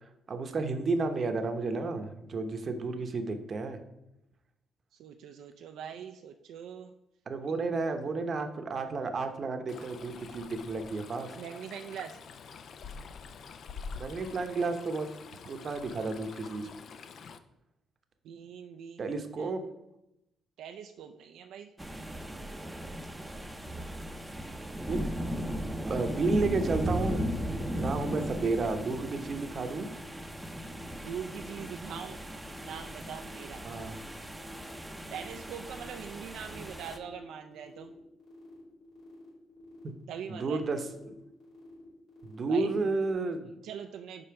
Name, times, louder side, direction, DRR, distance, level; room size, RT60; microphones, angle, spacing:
voice 1, 0.0-3.8 7.3-11.4 13.9-15.1 15.5-16.7 19.0-19.6 24.9-25.5 25.9-29.9 33.6-33.9 40.3-40.8 42.2-43.6, right 3 dB, 45° right, 7 dB, 0.8 m, -32 dB
voice 2, 5.0-6.9 7.5-7.7 11.4-12.2 18.2-19.5 20.6-21.7 31.0-32.2 32.6-33.6 35.1-37.9 40.1-40.6 42.5-42.8 43.6-44.2, right 8 dB, 80° right, 5 dB, 0.4 m, -42 dB
Stream, 9.7-17.4, left 5 dB, 60° left, 0.4 m, -46 dB
sound 1, 21.8-37.0, equal, 10° right, 0.6 m, -37 dB
sound 2, 25.5-43.1, left 3 dB, 80° left, 2.3 m, -53 dB
5.2 x 4.1 x 5.7 m, 0.88 s
cardioid pair, 90°, 0 cm